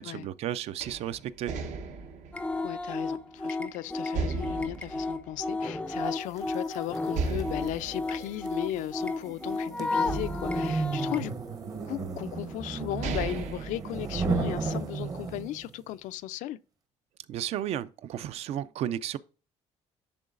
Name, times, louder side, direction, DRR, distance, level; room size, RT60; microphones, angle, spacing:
voice 1, 0.0-1.5 17.3-19.2, right 11 dB, 55° right, 0.4 m, -33 dB
sound 1, 0.8-3.6 4.1-6.1 6.4-6.5 7.1-9.5 10.0-11.6 12.4-12.5 12.8-14.6, right 4 dB, 75° right, 1.0 m, -36 dB
sound 2, 2.3-11.3, left 3 dB, 10° left, 0.4 m, -33 dB
voice 2, 2.6-11.3 11.8-16.6, left 14 dB, 90° left, 0.4 m, -36 dB
sound 3, 6.4-15.7, right 4 dB, 30° right, 0.8 m, -34 dB
10.5 x 3.8 x 2.4 m
cardioid pair, 175°, 13 cm